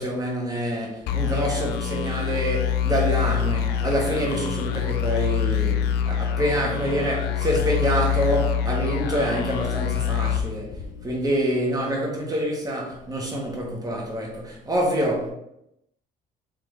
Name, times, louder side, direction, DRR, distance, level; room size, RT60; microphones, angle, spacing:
voice 1, 0.0-15.3, equal, 20° right, 1.3 m, -26 dB
sound 1, 1.1-11.4, left 9 dB, 75° left, 0.4 m, -25 dB
3.7 x 3.3 x 3.2 m
cardioid pair, 110°, 17 cm